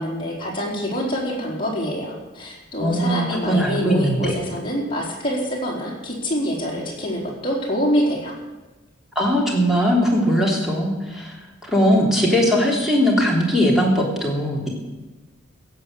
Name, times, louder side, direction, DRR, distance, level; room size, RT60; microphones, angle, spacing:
voice 1, 0.0-8.4, equal, 25° left, -4 dB, 4.5 m, -25 dB
voice 2, 2.8-4.3 9.1-11.3 11.6-14.7, equal, ahead, -3 dB, 3.4 m, -20 dB
16.5 x 7.8 x 8.0 m, 1.2 s
head